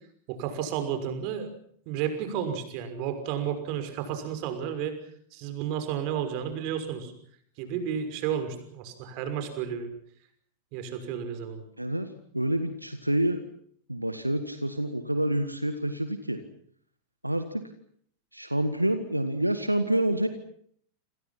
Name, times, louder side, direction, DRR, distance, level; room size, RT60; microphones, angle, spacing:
voice 1, 0.3-1.5 1.9-5.0 5.3-7.1 7.6-9.9 10.7-11.6, right 8 dB, 45° right, 9 dB, 6.0 m, -32 dB
voice 2, 11.8-13.4 13.9-16.4 17.2-17.6 18.3-20.3, right 1 dB, 85° right, 9 dB, 1.9 m, -28 dB
29.0 x 27.0 x 5.9 m, 0.62 s
figure-of-eight pair, 90°, 0 cm